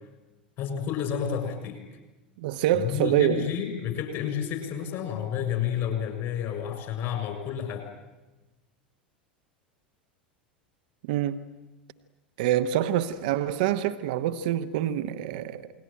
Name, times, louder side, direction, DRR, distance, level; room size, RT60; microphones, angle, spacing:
voice 1, 0.6-1.8 2.7-7.9, left 8 dB, 45° left, 6.8 m, -30 dB
voice 2, 2.4-3.5 11.1-11.4 12.4-15.7, right 11 dB, 60° right, 1.2 m, -26 dB
29.0 x 21.0 x 9.3 m
figure-of-eight pair, 80°, 5 cm